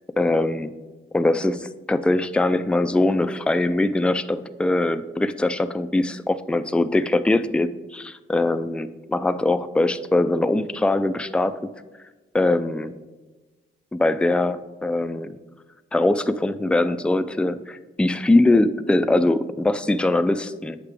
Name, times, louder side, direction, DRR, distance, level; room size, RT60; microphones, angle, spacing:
voice 1, 0.2-0.7 1.1-11.6 12.3-13.0 13.9-15.4 15.9-20.8, left 2 dB, 5° left, 11 dB, 0.3 m, -22 dB
8.2 x 5.8 x 3.4 m, 1.2 s
cardioid pair, 70°, 21 cm